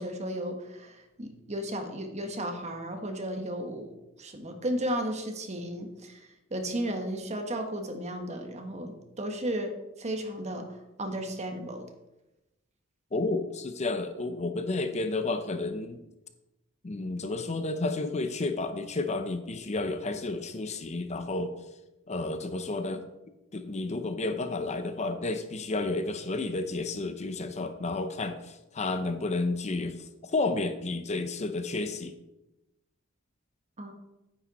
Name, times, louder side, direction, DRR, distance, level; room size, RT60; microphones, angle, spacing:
voice 1, 0.0-3.9 4.2-6.2 6.5-9.7 10.0-10.7 11.0-11.9 33.8-33.9, right 1 dB, 35° right, 5 dB, 1.3 m, -34 dB
voice 2, 13.1-16.0 16.8-21.5 22.1-23.0 23.5-32.1, left 2 dB, 35° left, 9 dB, 0.6 m, -31 dB
9.5 x 8.8 x 4.1 m, 0.96 s
head